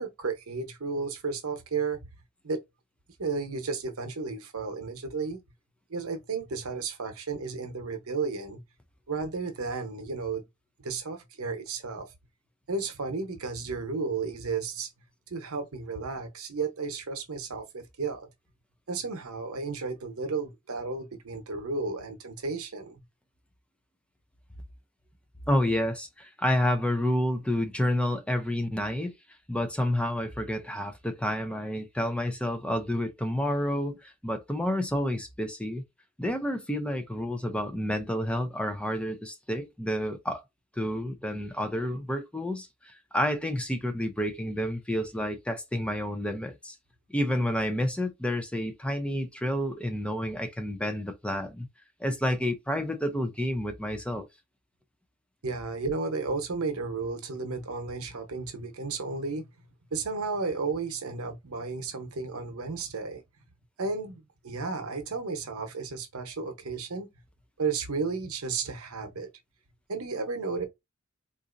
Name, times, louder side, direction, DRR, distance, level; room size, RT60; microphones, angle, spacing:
voice 1, 0.0-2.0 2.4-2.6 3.2-5.4 5.9-8.6 9.1-10.4 10.8-12.1 12.7-14.9 15.3-18.3 18.9-23.0 55.4-59.5 59.9-63.2 63.8-67.1 67.6-69.3 69.9-70.6, right 4 dB, 85° right, 0.9 m, -33 dB
voice 2, 25.5-29.1 29.5-35.8 36.2-40.4 40.8-46.8 47.1-51.7 52.0-54.3, left 1 dB, 5° left, 0.4 m, -29 dB
4.0 x 2.5 x 2.5 m
head